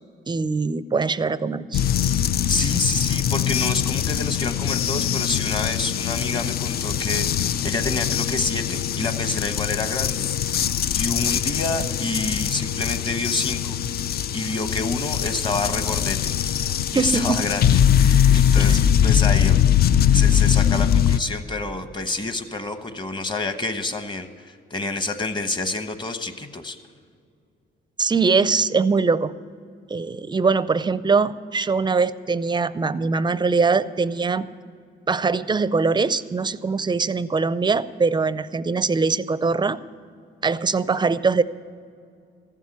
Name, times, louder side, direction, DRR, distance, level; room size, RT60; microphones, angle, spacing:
voice 1, 0.3-1.8 16.9-17.5 18.6-18.8 28.0-29.3 29.9-34.5 35.1-39.8 40.4-41.4, right 4 dB, 20° right, 16 dB, 0.5 m, -22 dB
sound 1, 1.7-21.2, left 9 dB, 50° left, 0.4 m, -21 dB
voice 2, 2.5-10.7 10.9-13.8 14.3-16.4 16.9-19.6 20.1-26.8, left 2 dB, 25° left, 9 dB, 1.1 m, -28 dB
14.5 x 7.3 x 9.6 m, 2.3 s
cardioid pair, 90°, 20 cm